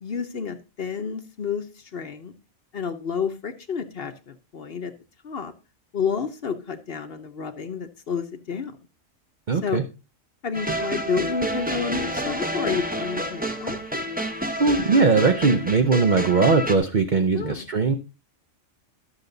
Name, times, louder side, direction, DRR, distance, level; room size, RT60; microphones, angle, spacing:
voice 1, 0.0-2.3 2.7-4.9 5.2-5.5 5.9-8.8 9.6-9.8 10.4-13.8 17.3-17.7, left 6 dB, 50° left, 9 dB, 1.0 m, -30 dB
voice 2, 9.5-9.8 14.6-17.9, right 4 dB, 40° right, 7 dB, 0.8 m, -20 dB
sound 1, 10.5-16.8, equal, 5° right, 0.9 m, -29 dB
12.5 x 6.7 x 3.9 m, 0.30 s
omnidirectional pair, 1.4 m